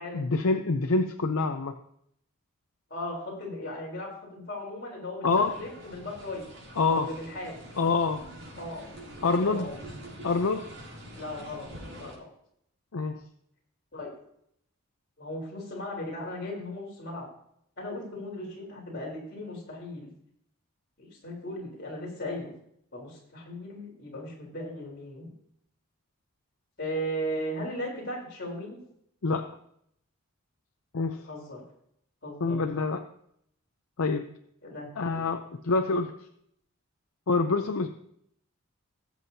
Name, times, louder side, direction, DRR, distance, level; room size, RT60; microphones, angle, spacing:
voice 1, 0.1-1.7 5.2-5.5 6.8-7.1 7.8-8.2 9.2-9.7 10.2-10.7 12.9-13.1 29.2-29.5 30.9-31.2 32.4-33.0 34.0-34.3 35.0-36.1 37.3-37.9, left 3 dB, 70° left, 6 dB, 0.6 m, -26 dB
voice 2, 2.9-6.4 6.8-7.6 8.6-8.9 9.2-9.8 11.1-11.7 11.9-12.3 13.9-14.1 15.2-17.3 17.8-20.1 21.0-22.5 22.9-25.3 26.8-28.8 31.2-31.6 32.2-32.6 34.6-35.3, left 1 dB, 50° left, -3 dB, 3.9 m, -37 dB
sound 1, 5.3-12.2, equal, 75° right, 4.8 m, -45 dB
19.5 x 7.5 x 2.8 m, 0.71 s
head